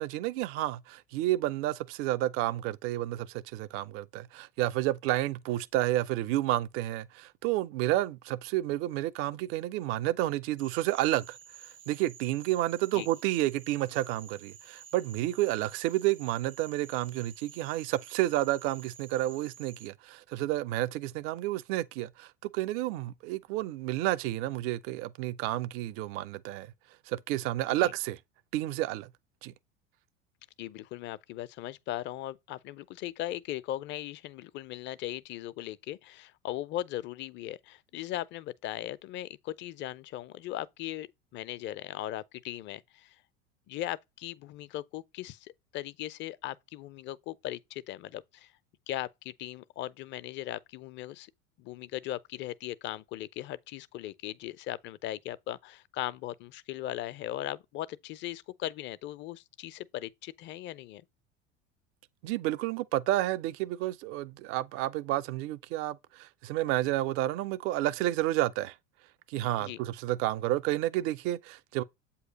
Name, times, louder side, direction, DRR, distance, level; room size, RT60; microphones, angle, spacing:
voice 1, 0.0-11.4 11.9-26.7 27.1-28.2 28.5-29.1 29.4-29.5 62.2-68.7 69.3-71.8, right 15 dB, 35° right, 0.4 m, -30 dB
Cricket / Frog, 10.6-19.9, right 8 dB, 80° right, 0.9 m, -51 dB
voice 2, 30.6-43.2 43.7-48.5 48.9-51.3 51.6-61.1 69.6-69.8, left 14 dB, 30° left, 0.4 m, -38 dB
7.9 x 2.8 x 5.0 m
figure-of-eight pair, 75°, 38 cm